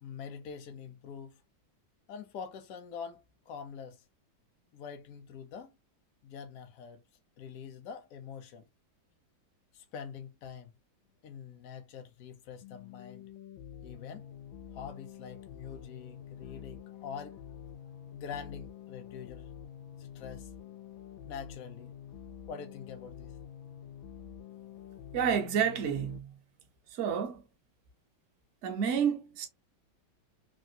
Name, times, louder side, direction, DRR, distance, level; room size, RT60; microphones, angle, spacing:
voice 1, 0.0-1.4 2.1-4.0 4.7-5.8 6.2-7.0 7.4-8.7 9.7-10.7 11.2-13.3 13.8-14.3 14.7-17.6 18.1-19.5 20.0-20.5 21.2-21.9 22.5-23.3, left 7 dB, 70° left, 0.8 m, -45 dB
sound 1, 12.6-26.2, left 9 dB, 85° left, 1.4 m, -48 dB
voice 2, 25.1-26.4 26.9-27.4 28.6-29.5, right 8 dB, 65° right, 0.7 m, -30 dB
3.3 x 2.4 x 2.7 m
omnidirectional pair, 2.1 m